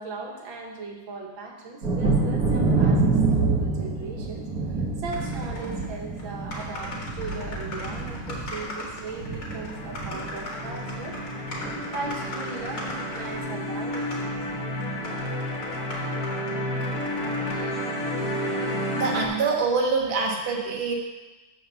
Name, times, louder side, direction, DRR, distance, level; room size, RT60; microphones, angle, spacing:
voice 1, 0.0-4.5 4.8-11.2 11.9-14.4, right 3 dB, 75° right, 0 dB, 2.0 m, -38 dB
Thunder, 1.8-11.2 11.5-12.2 12.6-12.7 13.1-13.3, right 3 dB, 50° right, 1.7 m, -27 dB
sound 1, 5.1-5.9 6.2-6.3 6.5-13.5 13.9-14.3 14.8-17.7 18.0-18.9, left 1 dB, 85° left, 3.2 m, -39 dB
sound 2, 9.7-19.3, left 1 dB, 45° left, 2.0 m, -31 dB
voice 2, 18.9-20.9, right 4 dB, 35° right, -1 dB, 1.3 m, -25 dB
7.8 x 5.7 x 6.8 m, 1.2 s
omnidirectional pair, 2.2 m